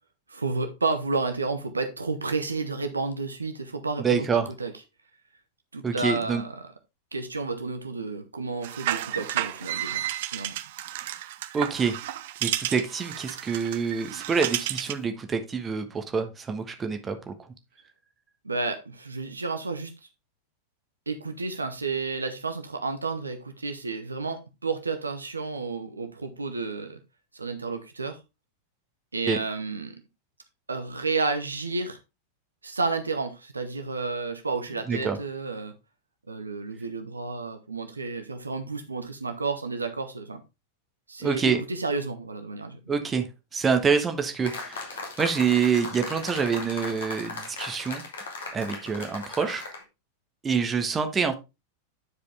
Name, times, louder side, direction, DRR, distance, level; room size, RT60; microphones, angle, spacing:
voice 1, 0.3-4.7 5.7-6.7 7.1-10.0 10.3-10.5 18.4-19.9 21.1-27.0 27.3-28.2 29.1-30.0 30.7-32.0 32.6-35.7 36.3-40.4 41.1-42.8, right 3 dB, 80° right, 1.0 m, -31 dB
voice 2, 4.0-4.5 5.8-6.4 11.5-12.0 12.4-17.3 29.3-29.4 34.9-35.2 41.2-41.6 42.9-43.3 43.5-48.0 48.5-49.7 50.4-51.3, right 6 dB, 20° right, 1.2 m, -26 dB
sound 1, 8.6-15.1, right 13 dB, 55° right, 0.7 m, -32 dB
sound 2, 44.4-49.8, left 3 dB, 65° left, 2.1 m, -37 dB
9.9 x 5.0 x 3.4 m
figure-of-eight pair, 90°, 0 cm